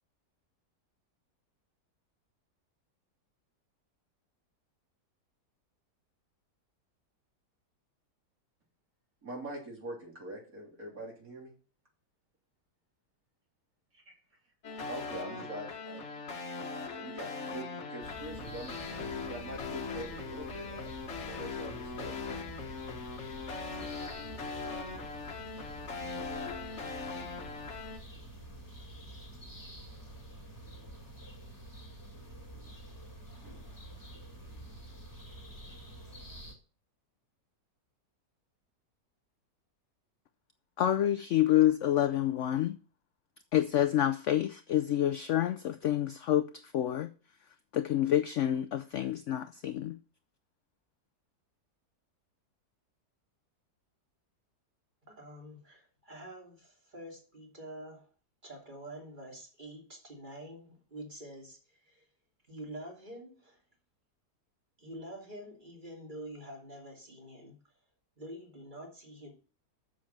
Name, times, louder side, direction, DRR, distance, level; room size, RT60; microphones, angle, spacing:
voice 1, 9.2-11.5 14.9-16.0 16.9-20.9 21.2-22.4, right 1 dB, 55° right, 3.7 m, -44 dB
sound 1, 14.6-28.0, left 4 dB, 45° left, 1.4 m, -40 dB
sound 2, 18.0-36.5, right 1 dB, 10° left, 2.0 m, -48 dB
voice 2, 40.8-42.8 43.5-47.1 47.7-50.0, left 12 dB, 75° left, 0.7 m, -28 dB
voice 3, 55.1-58.1 58.4-62.1 62.4-63.6 64.8-67.6 68.2-69.3, right 1 dB, 25° right, 3.1 m, -47 dB
7.6 x 7.4 x 5.8 m
omnidirectional pair, 1.8 m